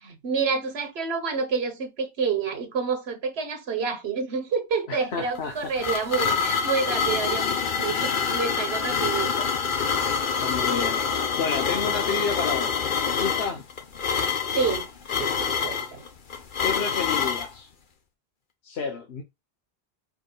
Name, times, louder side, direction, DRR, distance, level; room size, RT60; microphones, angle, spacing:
voice 1, 0.2-7.5 7.8-9.5 14.5-14.9 15.2-16.0, right 5 dB, 75° right, 1.3 m, -28 dB
voice 2, 4.9-5.9 10.4-13.6 16.6-17.7 18.6-19.2, left 5 dB, 80° left, 1.2 m, -31 dB
sound 1, 5.3-17.5, left 6 dB, 55° left, 1.0 m, -26 dB
4.9 x 4.8 x 2.2 m
omnidirectional pair, 1.1 m